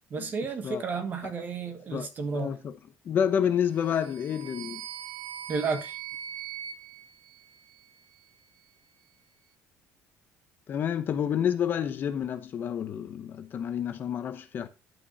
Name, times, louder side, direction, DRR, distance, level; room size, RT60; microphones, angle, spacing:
voice 1, 0.1-2.6 5.5-6.0, right 5 dB, 30° right, 1.4 m, -32 dB
voice 2, 2.3-2.7 3.0-4.8 10.7-14.7, left 8 dB, 35° left, 0.9 m, -29 dB
sound 1, 3.8-8.1, right 10 dB, 70° right, 1.0 m, -42 dB
10.5 x 6.0 x 4.1 m
cardioid pair, 170°, 6 cm